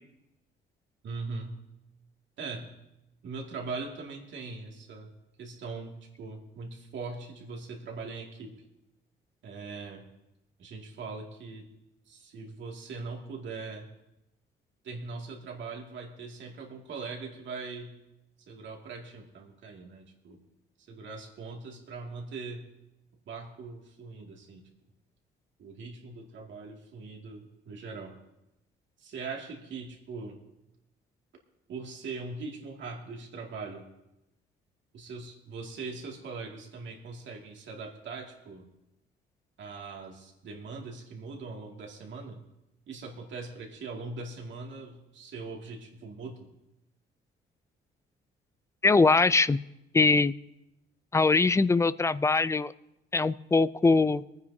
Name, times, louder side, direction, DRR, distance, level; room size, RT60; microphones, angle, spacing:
voice 1, 1.0-1.6 2.4-2.7 3.2-5.1 5.4-8.5 9.4-10.0 10.6-11.6 12.1-13.9 14.8-17.9 18.5-20.4 20.9-22.6 23.3-24.6 25.6-28.1 29.0-30.4 31.7-33.8 34.9-38.7 39.6-42.4 42.9-46.5, right 4 dB, 70° right, 0 dB, 2.3 m, -41 dB
voice 2, 48.8-49.6 49.9-50.3 51.1-52.7 53.1-54.2, left 3 dB, 15° left, 17 dB, 0.4 m, -22 dB
24.0 x 9.6 x 2.8 m, 0.91 s
cardioid pair, 90°, 20 cm